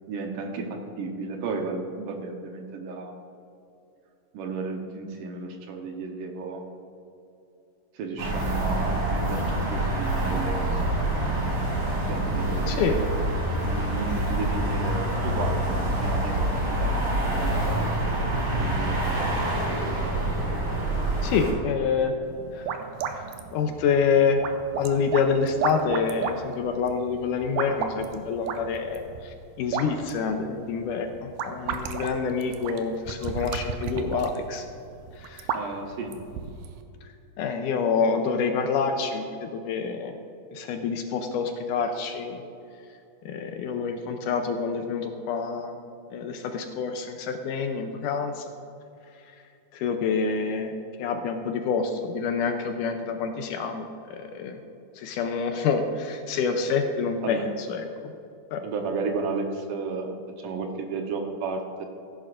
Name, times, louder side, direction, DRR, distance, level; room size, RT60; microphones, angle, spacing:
voice 1, 0.1-3.2 4.3-6.7 7.9-11.0 11.2-11.6 12.1-13.2 13.6-17.9 18.6-19.3 35.5-36.1 57.2-57.5 58.6-61.9, right 4 dB, 70° right, 3 dB, 2.4 m, -33 dB
sound 1, 8.2-21.5, right 1 dB, 35° right, 3.4 m, -26 dB
voice 2, 21.2-22.1 22.5-22.8 23.1-24.4 24.8-34.7 35.2-35.5 37.4-40.2 40.5-42.4 43.3-45.8 46.1-48.5 49.7-50.7 51.0-54.6 55.0-58.1 58.5-58.7, left 5 dB, 80° left, 5 dB, 2.0 m, -27 dB
sound 2, 22.2-36.8, right 6 dB, 90° right, 2.4 m, -34 dB
16.0 x 11.0 x 2.5 m, 2.7 s
omnidirectional pair, 4.0 m